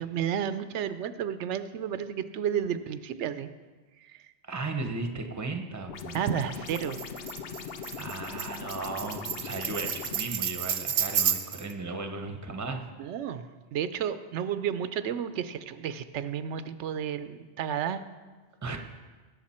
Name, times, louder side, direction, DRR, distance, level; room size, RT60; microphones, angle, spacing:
voice 1, 0.0-3.5 4.1-4.2 6.1-7.0 13.0-13.4 13.7-18.0, right 9 dB, 90° right, 12 dB, 0.9 m, -32 dB
voice 2, 4.4-6.2 8.0-12.9 18.6-18.8, right 3 dB, 15° right, 5 dB, 0.8 m, -35 dB
sound 1, 5.9-10.3, left 6 dB, 65° left, 0.9 m, -40 dB
Tambourine, 6.7-11.7, right 8 dB, 60° right, 0.8 m, -31 dB
18.0 x 6.8 x 4.3 m, 1.3 s
omnidirectional pair, 1.2 m